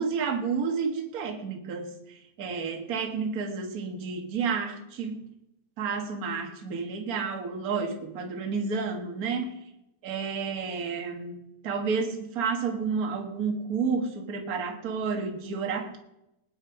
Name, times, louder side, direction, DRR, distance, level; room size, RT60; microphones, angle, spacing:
voice 1, 0.0-5.3 5.8-9.6 10.0-16.0, right 5 dB, 40° right, 1.5 m, -31 dB
19.5 x 9.6 x 4.8 m
omnidirectional pair, 3.7 m